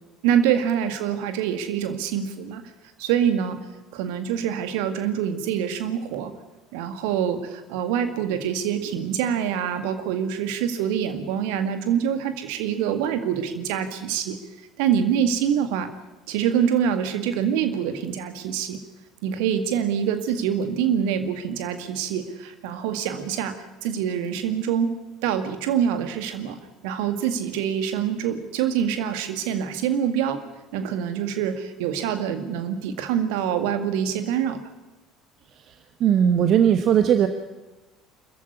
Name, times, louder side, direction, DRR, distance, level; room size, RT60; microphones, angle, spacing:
voice 1, 0.2-2.6 3.0-3.6 3.9-6.3 6.7-14.4 14.8-15.9 16.3-18.8 19.2-23.6 23.8-25.0 25.2-26.6 26.8-30.4 30.7-34.6, right 8 dB, 60° right, 8 dB, 2.1 m, -25 dB
voice 2, 36.0-37.3, right 9 dB, 45° right, 9 dB, 1.2 m, -18 dB
25.5 x 14.5 x 9.7 m, 1.1 s
figure-of-eight pair, 60°, 0 cm